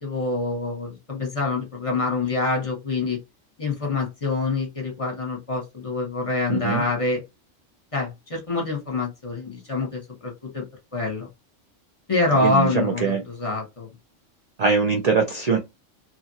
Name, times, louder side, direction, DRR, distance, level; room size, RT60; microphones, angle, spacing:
voice 1, 0.0-3.2 3.6-7.2 7.9-10.6 10.9-11.3 12.1-13.9, left 3 dB, 30° left, 1.1 m, -26 dB
voice 2, 6.5-6.8 12.4-13.2 14.6-15.6, right 5 dB, 60° right, 0.4 m, -22 dB
2.8 x 2.5 x 2.7 m
omnidirectional pair, 1.3 m